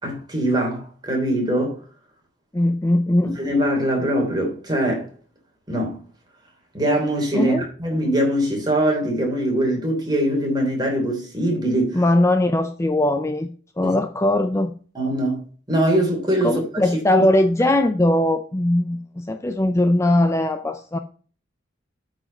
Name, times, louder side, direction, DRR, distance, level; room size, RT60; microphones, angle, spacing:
voice 1, 0.0-1.8 3.4-5.1 5.7-6.0 6.7-12.0 13.8-14.0 14.9-15.4 15.7-16.6 17.1-17.3, right 1 dB, 20° right, 3.2 m, -22 dB
voice 2, 2.5-3.4 7.3-7.7 11.9-13.5 13.8-14.7 16.4-21.0, left 1 dB, 15° left, 0.5 m, -20 dB
9.1 x 4.9 x 5.4 m
head